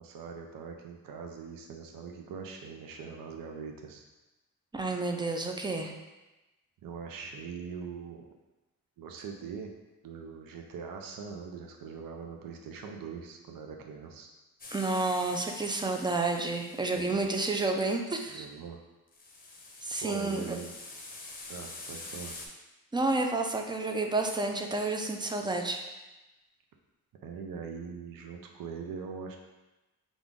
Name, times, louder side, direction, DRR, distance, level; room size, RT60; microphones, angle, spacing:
voice 1, 0.0-4.0 6.8-8.3 9.0-9.7 10.0-14.3 16.9-17.2 18.3-18.8 20.0-20.7 21.5-22.4 27.2-29.4, right 6 dB, 70° right, 3 dB, 0.6 m, -42 dB
voice 2, 4.7-5.9 14.7-18.5 19.8-20.6 22.9-25.8, right 3 dB, 15° right, 3 dB, 0.4 m, -30 dB
sound 1, 14.6-17.1 19.1-22.5, left 2 dB, 25° left, 0.7 m, -46 dB
5.3 x 2.4 x 3.6 m, 1.1 s
cardioid pair, 120°, 35 cm